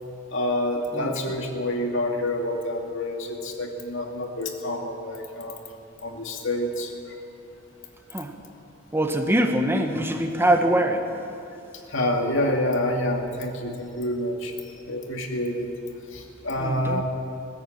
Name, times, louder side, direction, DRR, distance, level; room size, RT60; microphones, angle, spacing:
voice 1, 0.3-5.6 6.0-7.2 11.9-14.5 14.9-15.7 16.1-17.0, left 1 dB, 70° left, 2 dB, 2.4 m, -27 dB
voice 2, 8.9-11.1 16.6-17.0, right 1 dB, 10° right, 4 dB, 1.3 m, -23 dB
20.0 x 14.5 x 8.9 m, 2.6 s
head